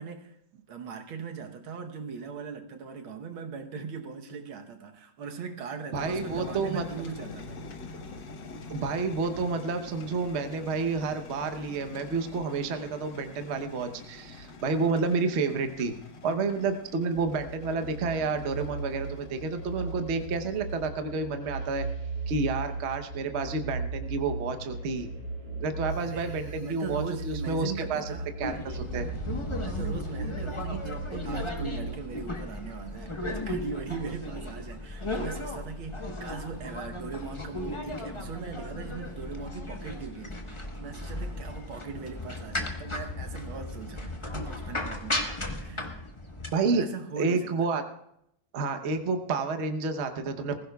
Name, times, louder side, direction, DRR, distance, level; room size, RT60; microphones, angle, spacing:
voice 1, 0.0-7.7 14.8-15.0 26.0-28.3 29.5-45.3 45.6-46.1 46.7-47.5, right 5 dB, 85° right, 5 dB, 1.9 m, -40 dB
voice 2, 5.9-6.9 8.7-15.9 16.2-21.9 22.3-25.1 25.6-29.1 46.5-46.8 47.1-47.8 48.5-50.6, right 4 dB, 50° right, 7 dB, 0.9 m, -30 dB
sound 1, 6.0-20.9, left 3 dB, 65° left, 1.8 m, -45 dB
sound 2, 17.2-31.9, right 3 dB, 20° right, 6.6 m, -37 dB
sound 3, 28.4-46.5, left 1 dB, 20° left, 0.8 m, -36 dB
20.5 x 15.5 x 2.3 m, 0.78 s
omnidirectional pair, 2.2 m